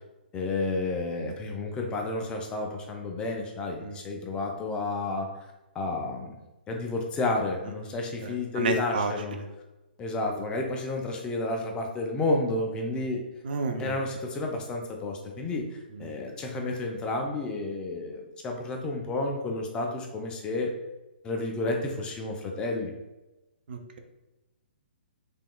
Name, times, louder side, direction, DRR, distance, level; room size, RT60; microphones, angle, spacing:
voice 1, 0.3-5.3 5.7-6.4 6.7-9.4 10.0-13.2 13.8-20.7 21.2-22.9, left 2 dB, 15° left, 1 dB, 0.5 m, -31 dB
voice 2, 8.2-9.4 13.5-13.9 16.0-16.1 23.7-24.0, right 4 dB, 60° right, 4 dB, 0.5 m, -31 dB
3.5 x 3.4 x 2.2 m, 1.0 s
figure-of-eight pair, 130°, 6 cm